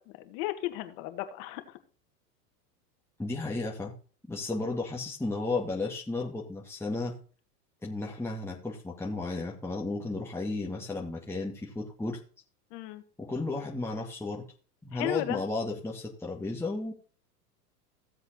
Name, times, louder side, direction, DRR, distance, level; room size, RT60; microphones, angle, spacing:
voice 1, 0.2-1.6 12.7-13.0 14.9-15.4, left 15 dB, 50° left, 8 dB, 2.0 m, -34 dB
voice 2, 3.2-3.9 4.3-7.2 7.8-12.2 13.2-14.4 14.8-16.9, left 2 dB, 5° left, -2 dB, 1.9 m, -33 dB
16.0 x 8.0 x 2.9 m, 0.40 s
hypercardioid pair, 95°, 48 cm